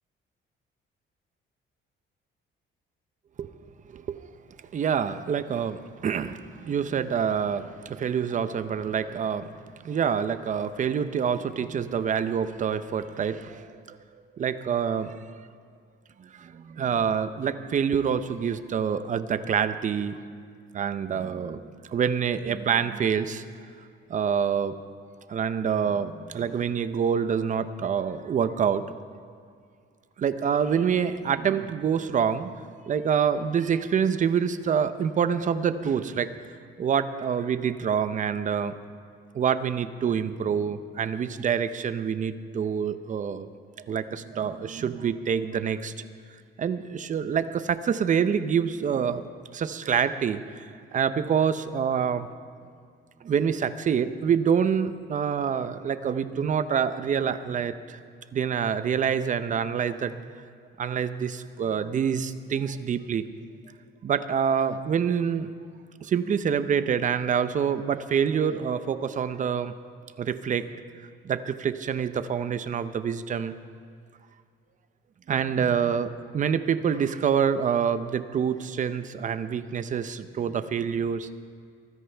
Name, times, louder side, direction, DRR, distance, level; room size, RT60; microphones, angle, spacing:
voice 1, 3.9-4.2 4.7-9.5 9.8-14.0 14.3-15.5 16.2-20.2 20.7-23.4 24.1-24.8 25.3-29.0 30.2-32.5 32.9-36.3 36.8-38.7 39.3-43.5 43.9-45.9 46.6-49.3 49.5-50.6 50.9-52.3 53.2-58.0 58.3-60.2 60.8-63.3 64.0-65.5 66.0-69.7 70.2-70.7 71.2-73.5 75.3-76.1 76.3-81.3, right 7 dB, 40° right, 12 dB, 0.6 m, -26 dB
23.5 x 13.5 x 3.4 m, 2.2 s
cardioid pair, 140°, 21 cm